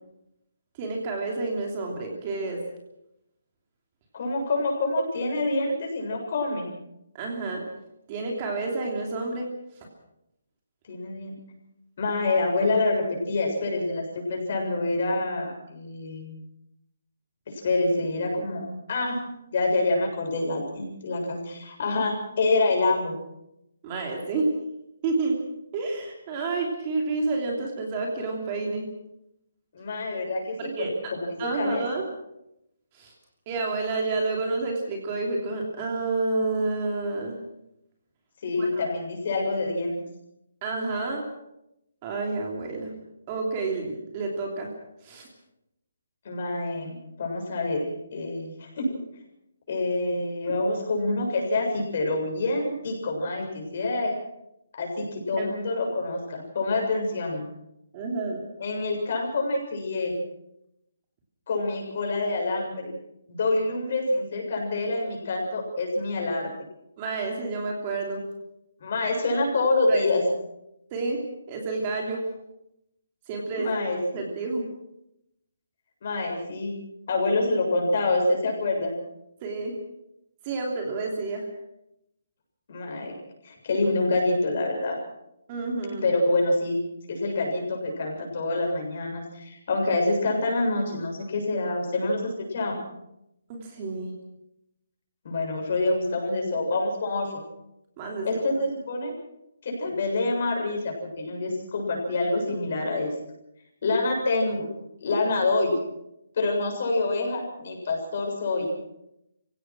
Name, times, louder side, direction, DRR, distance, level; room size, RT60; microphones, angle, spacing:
voice 1, 0.8-2.6 7.1-7.6 8.1-9.5 9.8-9.9 23.8-24.5 25.0-25.4 25.7-28.9 30.6-30.9 31.4-32.0 32.9-33.1 33.5-37.4 38.6-38.8 40.6-41.2 42.0-42.9 43.3-44.7 45.0-45.3 50.4-50.6 55.4-55.5 57.9-58.4 67.0-68.2 69.9-70.0 70.9-71.2 71.5-72.2 73.3-74.6 79.4-79.7 80.4-81.4 85.5-86.1 93.5-94.1 98.0-98.4, right 3 dB, 20° right, 0 dB, 3.0 m, -29 dB
voice 2, 4.1-6.7 10.9-11.3 12.0-16.4 17.5-19.2 19.5-23.2 29.7-31.9 38.4-39.9 46.2-48.9 49.7-54.1 54.7-57.5 58.6-60.1 61.5-62.9 63.3-66.5 68.8-70.2 73.5-74.3 76.0-76.7 77.1-78.9 82.7-83.1 83.4-85.0 86.0-86.8 87.1-92.8 95.2-97.3 98.2-99.1 99.6-103.1 103.8-104.7 105.0-105.8 106.3-108.8, left 2 dB, 40° left, 1 dB, 7.3 m, -26 dB
25.0 x 17.0 x 6.3 m, 0.85 s
hypercardioid pair, 175°, 0 cm